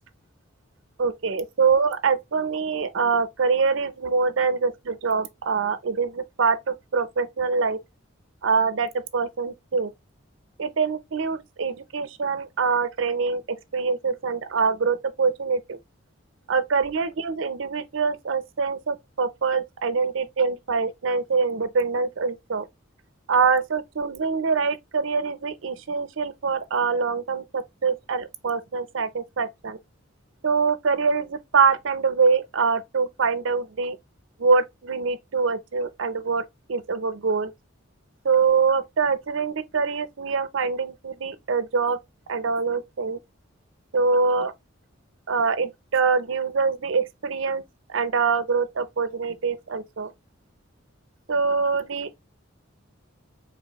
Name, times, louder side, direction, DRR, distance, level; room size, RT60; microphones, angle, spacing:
voice 1, 1.0-7.8 8.4-9.9 10.6-15.8 16.5-22.7 23.3-29.8 30.4-34.0 34.4-36.4 36.7-37.5 38.2-42.0 42.3-43.2 43.9-44.5 45.3-47.6 47.9-50.1 51.3-52.2, right 5 dB, 70° right, 0.6 m, -24 dB
4.0 x 3.1 x 2.9 m
head